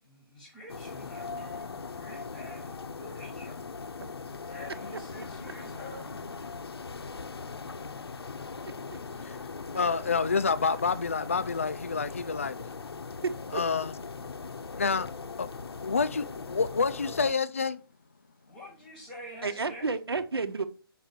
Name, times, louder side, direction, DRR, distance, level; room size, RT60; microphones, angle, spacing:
voice 1, 0.0-3.6 4.4-6.3 18.5-19.9, left 1 dB, 5° left, 1.1 m, -47 dB
sound 1, 0.7-17.3, left 4 dB, 80° left, 0.8 m, -40 dB
voice 2, 9.7-12.6 13.5-13.9 14.8-15.1 15.4-15.5 15.8-17.8, left 5 dB, 35° left, 0.4 m, -28 dB
voice 3, 13.2-13.6 19.4-20.7, right 4 dB, 75° right, 1.2 m, -31 dB
6.0 x 5.0 x 6.7 m
hypercardioid pair, 180°, 13 cm